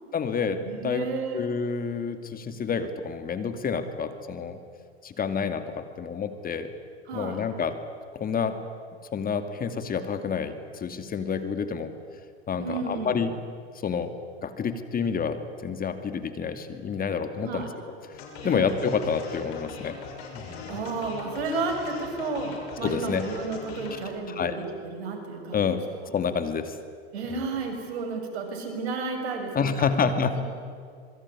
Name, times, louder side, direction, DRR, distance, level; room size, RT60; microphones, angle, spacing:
voice 1, 0.1-1.1 1.3-4.6 5.0-6.7 7.1-7.8 8.1-8.6 9.1-11.9 12.5-13.3 13.8-14.2 14.4-17.7 18.1-20.0 20.3-20.8 22.8-23.2 23.9-24.0 24.3-24.6 25.5-25.8 26.1-26.8 27.3-27.5 29.5-30.4, left 6 dB, 25° left, 9 dB, 2.4 m, -28 dB
voice 2, 0.6-1.5 7.1-7.4 12.6-13.2 17.4-17.7 18.4-18.7 20.7-25.8 27.1-29.9 30.3-30.4, right 4 dB, 80° right, 4 dB, 6.8 m, -32 dB
sound 1, 18.1-24.1, left 5 dB, 70° left, 7.0 m, -41 dB
26.5 x 22.5 x 9.8 m, 2.2 s
hypercardioid pair, 105°, 32 cm